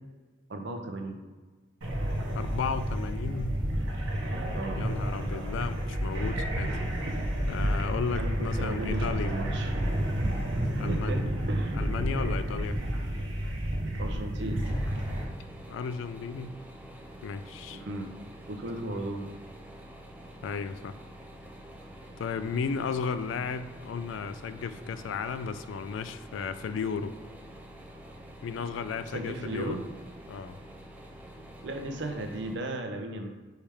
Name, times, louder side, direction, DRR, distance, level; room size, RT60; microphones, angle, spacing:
voice 1, 0.5-1.2 4.6-4.8 8.2-9.7 10.7-11.8 14.0-14.8 17.7-18.1 18.5-19.3 29.1-29.8 31.4-33.3, right 1 dB, 65° right, 4 dB, 0.6 m, -36 dB
sound 1, 1.8-15.2, right 1 dB, 90° right, 0.9 m, -30 dB
voice 2, 2.3-3.6 4.8-6.7 7.5-9.3 10.8-11.2 11.7-12.8 15.7-16.6 17.2-17.8 20.4-21.0 22.2-27.2 28.4-29.8 30.3-30.6, left 5 dB, 80° left, 11 dB, 0.3 m, -34 dB
sound 2, 14.6-32.6, right 1 dB, 10° right, 0.3 m, -47 dB
4.5 x 3.3 x 3.4 m, 1.3 s
head